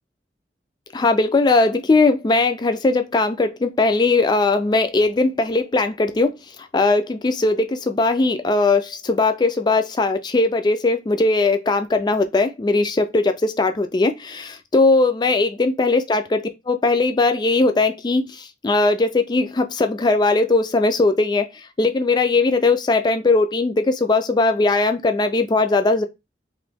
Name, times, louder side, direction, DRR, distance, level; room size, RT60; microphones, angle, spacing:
voice 1, 0.9-6.3 6.7-16.4 16.7-18.2 18.6-21.5 21.8-26.0, left 3 dB, 25° left, 0.3 m, -19 dB
3.0 x 2.6 x 3.3 m
head